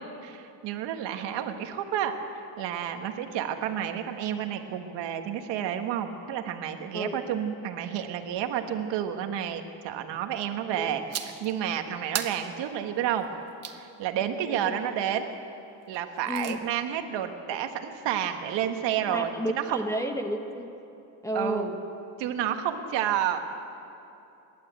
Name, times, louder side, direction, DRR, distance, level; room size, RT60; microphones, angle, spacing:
voice 1, 0.2-2.1 2.6-13.3 13.8-15.3 15.9-19.8 21.3-21.8 22.2-23.4, right 10 dB, 75° right, 6 dB, 1.6 m, -30 dB
sound 1, 11.1-11.5 12.1-13.8 15.9-16.6, right 8 dB, 35° right, 1.2 m, -36 dB
voice 2, 14.4-14.8 16.3-16.6 19.1-20.7 21.2-21.7, equal, 5° left, 4 dB, 1.3 m, -32 dB
27.5 x 12.0 x 8.2 m, 2.8 s
cardioid pair, 150°, 44 cm